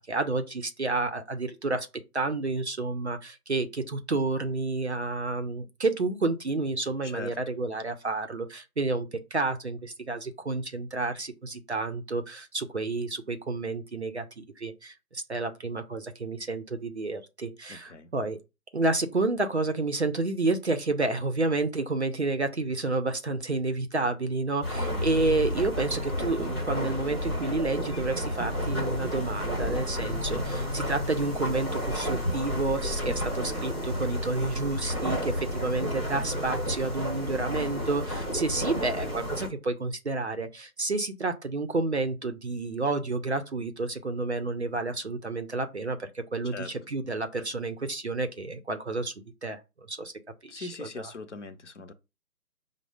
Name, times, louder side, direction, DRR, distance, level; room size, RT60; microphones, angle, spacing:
voice 1, 0.0-1.9 2.1-18.4 18.7-49.1 49.4-49.6 49.9-50.1 50.4-51.1, right 3 dB, 45° right, 0.5 m, -30 dB
voice 2, 7.0-7.4 17.7-18.1 46.4-46.7 50.5-51.9, left 4 dB, 50° left, 0.6 m, -41 dB
sound 1, 24.6-39.5, equal, 20° right, 0.8 m, -31 dB
5.2 x 2.0 x 4.8 m
hypercardioid pair, 170°, 46 cm